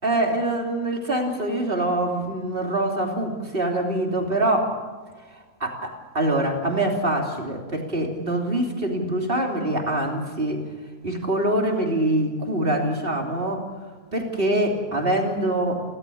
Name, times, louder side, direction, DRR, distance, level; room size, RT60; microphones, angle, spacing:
voice 1, 0.0-4.7 5.3-10.6 11.0-13.7 14.1-15.8, right 1 dB, 35° right, 1 dB, 3.4 m, -24 dB
29.5 x 13.5 x 8.7 m, 1.4 s
omnidirectional pair, 1.6 m